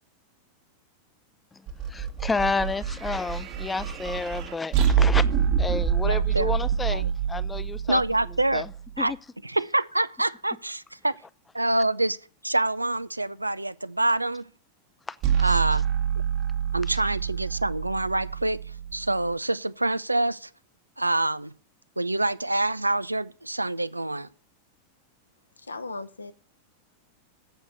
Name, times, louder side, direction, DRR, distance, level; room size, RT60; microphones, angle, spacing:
sound 1, 1.7-9.0 15.2-19.3, right 8 dB, 40° right, 1.3 m, -26 dB
voice 1, 1.9-5.2 5.6-8.0 8.5-8.7 9.0-9.2 15.1-15.6, left 3 dB, 10° left, 0.5 m, -30 dB
voice 2, 6.0-6.6 6.9-7.1 7.9-8.7 9.0-9.1 9.4-11.1 11.5-12.2 12.4-14.5 15.4-15.8 16.7-18.6 18.9-20.5 21.0-21.5 22.0-24.3, right 2 dB, 85° right, 0.4 m, -26 dB
voice 3, 25.6-26.3, left 3 dB, 80° left, 0.8 m, -37 dB
8.0 x 6.1 x 7.9 m
figure-of-eight pair, 90°, 0 cm